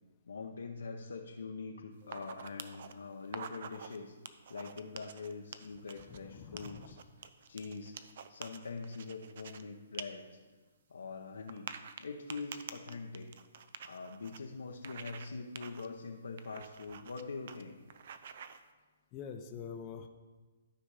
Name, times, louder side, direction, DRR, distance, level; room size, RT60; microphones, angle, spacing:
voice 1, 0.3-4.1 4.5-7.0 7.5-8.0 8.3-10.4 10.9-11.7 12.0-13.3 13.8-17.8, left 4 dB, 80° left, 1 dB, 0.9 m, -43 dB
sound 1, 2.0-2.9 3.2-4.0 4.3-6.2 6.6-9.6 9.9-10.0 10.4-10.5 11.5-14.4 14.8-15.3 15.6-15.9 16.4-17.2 17.5-17.6 17.9-18.6, right 7 dB, 55° right, 0.6 m, -47 dB
voice 2, 6.1-7.0 19.1-20.1, left 6 dB, 25° left, 4 dB, 0.7 m, -46 dB
13.0 x 5.3 x 4.9 m, 1.3 s
hypercardioid pair, 145°, 0 cm